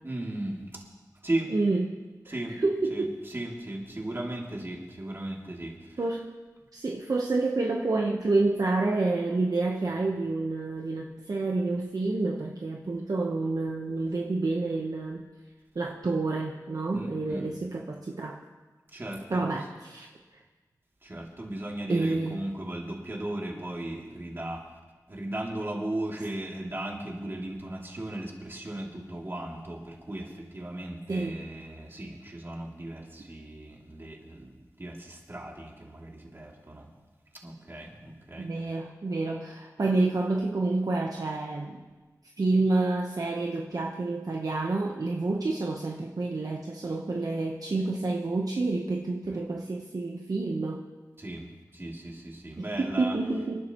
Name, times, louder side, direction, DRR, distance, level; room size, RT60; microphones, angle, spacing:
voice 1, 0.0-0.8 1.2-1.5 2.3-2.6 2.9-6.0 16.9-17.4 18.9-19.5 21.0-24.6 25.1-36.9 37.4-38.5 49.3-49.4 51.2-53.2, right 1 dB, 35° right, -2 dB, 2.8 m, -36 dB
voice 2, 1.5-2.0 2.3-3.2 6.0-6.3 6.7-15.2 15.7-18.4 19.3-20.1 21.9-22.4 31.1-31.4 38.4-41.8 42.4-50.8 52.6-53.6, right 3 dB, 60° right, -1 dB, 1.1 m, -28 dB
27.0 x 11.5 x 3.1 m, 1.3 s
wide cardioid pair, 90°, 7 cm